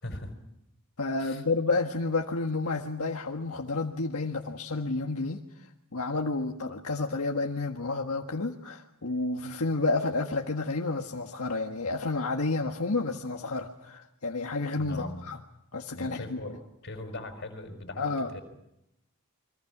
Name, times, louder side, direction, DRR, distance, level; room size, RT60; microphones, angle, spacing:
voice 1, 1.0-5.4 5.9-15.4 15.7-16.4 18.0-18.3, left 3 dB, 85° left, 2 dB, 1.6 m, -30 dB
voice 2, 14.8-15.2 15.9-16.6 16.8-18.4, left 1 dB, 50° left, 6 dB, 5.1 m, -40 dB
29.5 x 23.5 x 6.1 m, 0.82 s
head